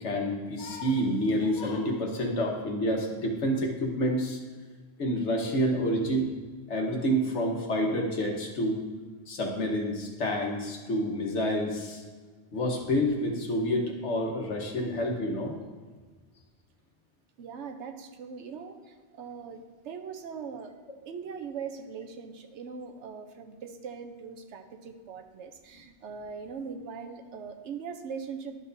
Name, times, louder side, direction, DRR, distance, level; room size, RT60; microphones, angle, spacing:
voice 1, 0.0-4.4 5.0-6.3 6.7-8.8 9.3-12.0 12.5-15.6, equal, 90° left, 0 dB, 1.5 m, -28 dB
voice 2, 17.4-20.7 21.0-28.6, right 6 dB, 85° right, 6 dB, 1.0 m, -41 dB
11.5 x 6.5 x 2.7 m, 1.4 s
omnidirectional pair, 1.1 m